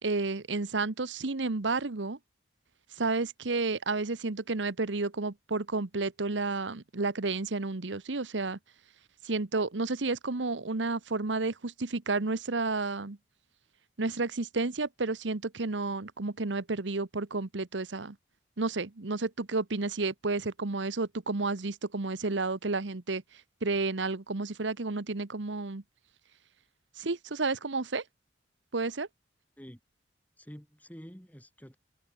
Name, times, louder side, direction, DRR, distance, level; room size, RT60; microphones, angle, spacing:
voice 1, 0.0-2.2 3.0-8.6 9.2-13.2 14.0-18.2 18.6-23.2 23.6-25.8 27.0-28.0 28.7-29.1, right 3 dB, 90° right, 1.1 m, -31 dB
voice 2, 30.4-31.8, equal, 10° left, 6.2 m, -48 dB
head